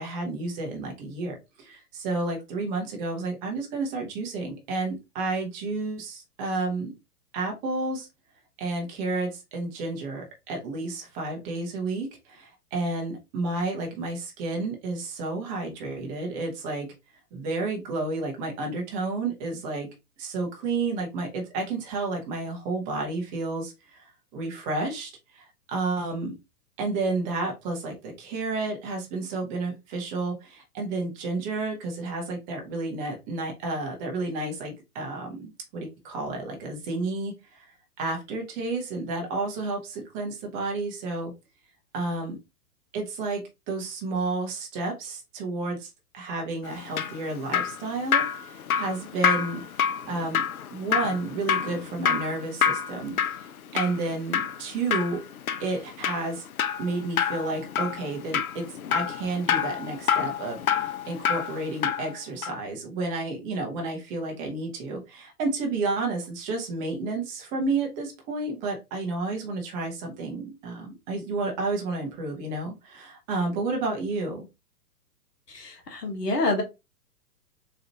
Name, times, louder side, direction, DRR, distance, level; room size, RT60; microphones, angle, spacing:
voice 1, 0.0-6.9 7.3-8.1 8.6-16.9 17.3-19.9 20.2-26.3 26.8-37.7 38.0-41.3 41.9-42.4 42.9-49.6 50.1-50.4 50.7-55.2 55.6-56.4 56.8-58.7 58.9-74.5, right 3 dB, 15° right, 1 dB, 0.5 m, -31 dB
Drip, 46.7-62.1 62.4-62.6, left 8 dB, 65° left, 0.5 m, -28 dB
voice 2, 75.5-76.6, left 2 dB, 80° left, 2 dB, 1.2 m, -27 dB
4.0 x 2.4 x 2.8 m, 0.24 s
figure-of-eight pair, 115°, 47 cm